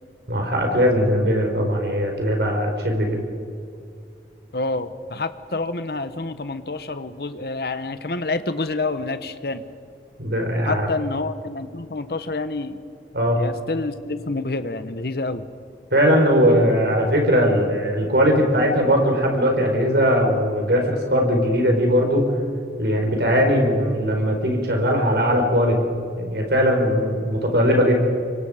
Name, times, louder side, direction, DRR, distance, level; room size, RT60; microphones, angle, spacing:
voice 1, 0.3-3.2 10.2-10.9 13.1-13.4 15.9-22.3 22.8-25.8 26.2-27.9, equal, 70° right, 2 dB, 4.4 m, -19 dB
voice 2, 4.5-9.6 10.6-12.8 13.3-15.4, left 3 dB, 60° left, 11 dB, 1.1 m, -28 dB
26.0 x 23.5 x 5.0 m, 2.3 s
head